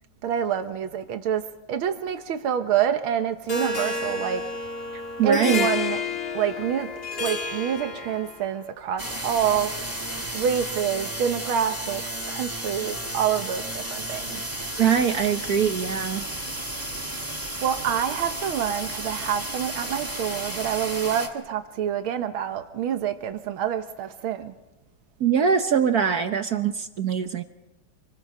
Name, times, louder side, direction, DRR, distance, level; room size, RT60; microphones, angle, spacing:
voice 1, 0.2-4.5 5.2-6.0 6.3-6.9 7.2-9.7 10.3-14.4 17.6-24.5, right 9 dB, 90° right, 8 dB, 1.9 m, -27 dB
Harp, 3.5-8.5, left 4 dB, 30° left, 1.5 m, -30 dB
voice 2, 5.2-5.6 14.8-16.2 25.2-27.4, right 7 dB, 55° right, 8 dB, 1.2 m, -22 dB
sound 1, 9.0-21.3, right 1 dB, 10° right, 2.0 m, -33 dB
27.0 x 20.5 x 5.6 m, 1.0 s
omnidirectional pair, 2.2 m